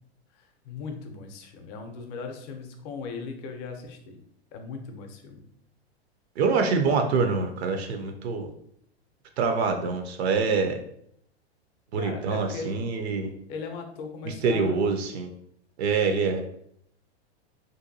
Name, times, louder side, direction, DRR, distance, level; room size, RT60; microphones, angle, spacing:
voice 1, 0.3-4.2 4.5-5.4 11.9-12.7 13.5-14.8, left 4 dB, 40° left, 5 dB, 0.5 m, -38 dB
voice 2, 6.4-8.5 9.4-10.8 11.9-13.3 14.2-15.3 15.8-16.4, right 4 dB, 70° right, 5 dB, 0.5 m, -25 dB
2.7 x 2.2 x 2.5 m, 0.70 s
hypercardioid pair, 120°, 33 cm